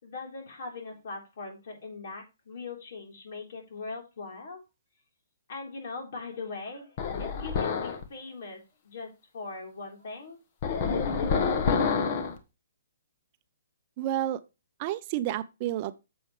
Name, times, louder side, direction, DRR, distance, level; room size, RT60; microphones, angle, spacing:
voice 1, 0.0-4.6 5.5-10.4 11.0-12.1, left 3 dB, 60° left, 3.6 m, -41 dB
sound 1, 7.0-8.0 10.6-12.4, left 5 dB, 40° left, 1.4 m, -27 dB
voice 2, 14.0-14.4 14.8-16.0, right 12 dB, 35° right, 0.6 m, -30 dB
8.8 x 7.2 x 3.2 m
hypercardioid pair, 140°, 0 cm